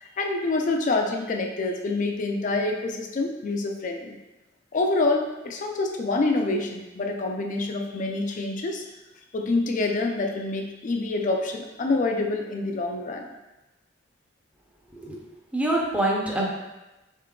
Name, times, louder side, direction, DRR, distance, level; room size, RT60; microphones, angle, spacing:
voice 1, 0.0-4.2 4.7-8.8 9.3-13.2, left 2 dB, 45° left, 2 dB, 0.4 m, -26 dB
voice 2, 15.5-16.5, right 1 dB, 5° right, -3 dB, 0.5 m, -25 dB
3.7 x 3.6 x 2.3 m, 1.0 s
head